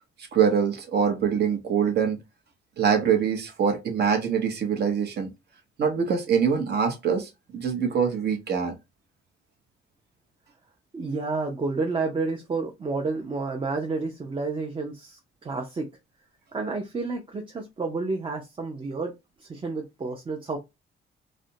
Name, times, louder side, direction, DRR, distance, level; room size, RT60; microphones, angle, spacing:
voice 1, 0.2-2.2 2.8-5.3 5.8-8.8, right 7 dB, 55° right, 0.9 m, -24 dB
voice 2, 10.9-15.9 16.5-19.1 19.4-20.6, right 3 dB, 25° right, 0.6 m, -30 dB
2.5 x 2.1 x 2.7 m
cardioid pair, 90°, 20 cm